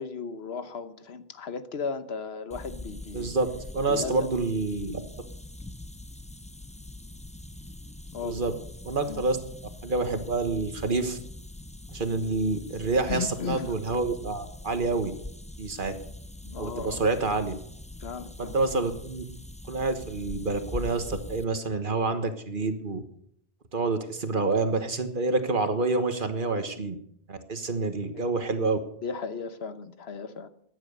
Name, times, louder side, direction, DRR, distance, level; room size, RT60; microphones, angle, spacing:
voice 1, 0.0-3.3 3.9-4.3 8.1-8.4 9.1-9.2 13.1-13.7 16.4-17.0 18.0-18.6 28.1-28.3 29.0-30.5, left 5 dB, 85° left, 12 dB, 1.3 m, -35 dB
sound 1, 2.5-21.4, left 2 dB, 10° left, 0.5 m, -42 dB
voice 2, 3.1-3.5 3.7-5.0 8.2-8.5 8.8-9.4 9.8-11.2 11.9-15.1 15.6-15.9 16.6-17.5 18.4-19.2 19.7-23.0 23.7-27.0 27.3-28.8, right 3 dB, 55° right, 9 dB, 1.5 m, -27 dB
14.5 x 9.9 x 6.7 m, 0.71 s
omnidirectional pair, 1.0 m